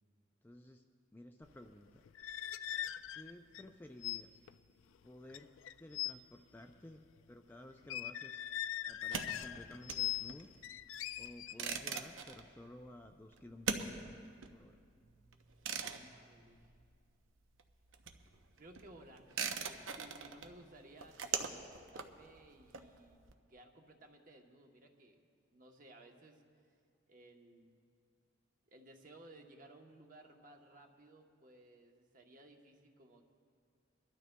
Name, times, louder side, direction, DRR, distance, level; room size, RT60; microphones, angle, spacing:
voice 1, 0.4-0.8 1.1-2.1 3.1-4.4 5.0-5.5 5.8-7.0 7.3-8.4 8.9-10.5 11.2-14.2 14.5-14.8, left 1 dB, 10° left, 4 dB, 0.3 m, -54 dB
sound 1, 2.1-3.7 4.0-4.2 4.5-4.7 5.3-6.1 7.8-10.4 10.6-12.0, left 13 dB, 85° left, 0.3 m, -41 dB
sound 2, 8.9-17.3 17.5-23.3, right 6 dB, 90° right, 0.7 m, -43 dB
voice 2, 15.9-16.7 18.6-25.2 25.5-26.7 27.1-27.8 28.7-33.2, right 1 dB, 45° right, 3 dB, 1.0 m, -59 dB
26.5 x 12.0 x 2.2 m, 2.2 s
head